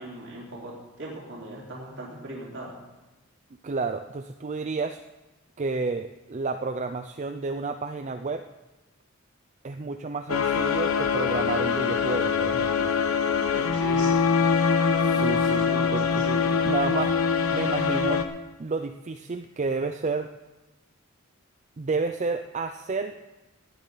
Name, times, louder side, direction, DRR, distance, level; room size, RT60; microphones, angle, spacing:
voice 1, 0.0-2.7 13.3-14.4 15.1-16.5, right 1 dB, 60° right, -4 dB, 3.5 m, -39 dB
voice 2, 3.6-5.0 5.6-8.5 9.6-12.9 15.0-16.3 16.6-17.2 17.5-18.2 18.6-20.3 21.8-23.2, right 4 dB, 35° right, 7 dB, 0.4 m, -30 dB
sound 1, 10.3-18.2, left 6 dB, 80° left, 0.9 m, -24 dB
17.5 x 10.5 x 4.0 m, 1.1 s
head